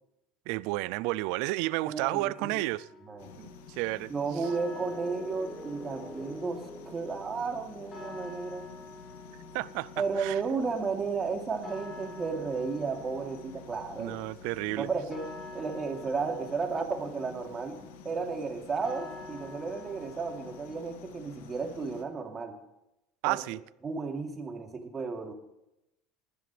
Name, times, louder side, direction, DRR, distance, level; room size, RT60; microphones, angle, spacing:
voice 1, 0.5-2.9 3.4-4.1 4.4-4.5 9.5-10.4 14.0-14.9 23.2-23.6, right 19 dB, 70° right, 0.4 m, -32 dB
voice 2, 1.8-2.6 3.1-3.3 4.1-8.7 10.0-14.1 14.8-15.2 15.5-17.8 18.0-22.6 23.2-23.4 23.8-25.3, right 4 dB, 30° right, 3.0 m, -33 dB
sound 1, 2.3-21.0, left 2 dB, 40° left, 4.6 m, -49 dB
sound 2, 3.2-22.0, left 7 dB, 85° left, 1.5 m, -50 dB
sound 3, 4.6-8.4, right 1 dB, 5° right, 1.9 m, -46 dB
20.0 x 11.5 x 3.4 m
supercardioid pair, 95°, 0 cm